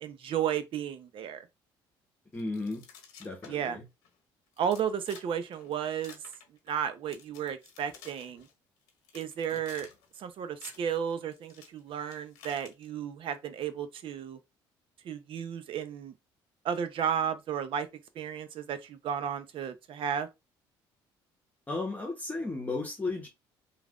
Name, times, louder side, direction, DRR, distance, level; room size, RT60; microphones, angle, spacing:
voice 1, 0.0-1.5 3.5-3.8 4.6-6.2 6.7-8.5 9.1-9.9 10.2-14.4 15.0-16.1 16.6-17.9 18.2-20.3, right 8 dB, 55° right, 0.6 m, -33 dB
sound 1, 2.3-3.8 4.0-4.1 4.5-5.3 5.5-6.8 7.1-8.5 8.9-10.2 10.4-12.9, left 7 dB, 90° left, 0.9 m, -52 dB
voice 2, 2.3-2.8 3.2-3.8 21.7-23.3, left 3 dB, 15° left, 0.9 m, -34 dB
3.2 x 2.4 x 2.4 m
supercardioid pair, 75°, 10 cm